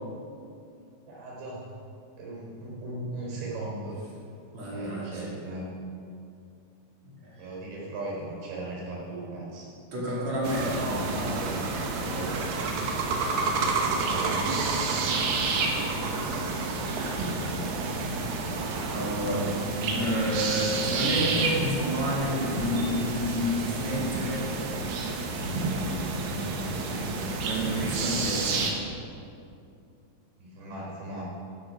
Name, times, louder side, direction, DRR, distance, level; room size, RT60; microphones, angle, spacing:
voice 1, 1.1-1.7 2.2-4.0 4.6-5.7 7.4-9.7 10.8-11.6 11.9-12.5 14.1-14.5 30.4-31.2, right 2 dB, 80° right, -4 dB, 6.2 m, -37 dB
voice 2, 4.5-5.3 7.0-7.5 9.9-10.8 15.4-16.0 18.9-19.6 19.9-24.5 27.4-28.8, equal, 45° right, -4 dB, 3.2 m, -30 dB
sound 1, 10.4-28.7, right 3 dB, 65° right, 2.7 m, -29 dB
13.0 x 12.5 x 5.0 m, 2.5 s
omnidirectional pair, 4.9 m